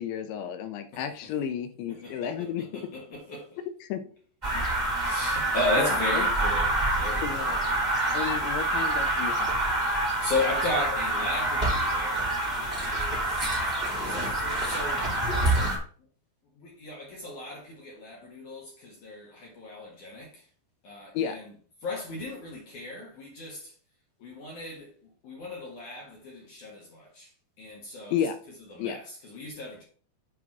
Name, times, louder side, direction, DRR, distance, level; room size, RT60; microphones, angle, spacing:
voice 1, 0.0-2.6 3.8-4.0 5.8-6.2 7.2-7.6 8.1-9.5 21.1-21.4 28.1-28.4 28.8-29.0, left 8 dB, 80° left, 3.0 m, -32 dB
voice 2, 0.9-1.3 1.9-3.6 4.5-4.7 5.0-7.6 10.2-15.1 16.5-20.5 20.8-21.5 21.8-23.8 24.2-27.3 27.6-28.2 28.7-29.8, left 2 dB, 60° left, 2.3 m, -36 dB
sound 1, 4.4-15.8, right 2 dB, 20° right, 1.3 m, -27 dB
7.9 x 3.6 x 5.9 m
omnidirectional pair, 5.3 m